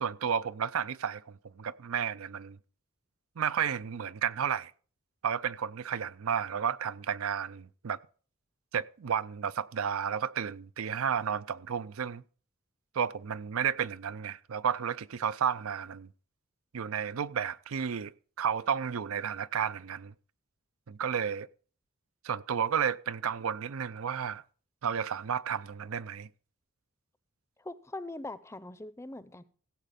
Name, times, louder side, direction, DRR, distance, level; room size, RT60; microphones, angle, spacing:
voice 1, 0.0-2.6 3.4-4.7 5.2-8.0 8.7-12.2 12.9-16.1 16.7-18.1 18.4-20.1 20.9-21.5 22.2-24.4 24.8-26.3, right 7 dB, 80° right, 0.5 m, -32 dB
voice 2, 27.6-29.4, left 2 dB, 15° left, 0.6 m, -41 dB
16.0 x 7.5 x 5.1 m
head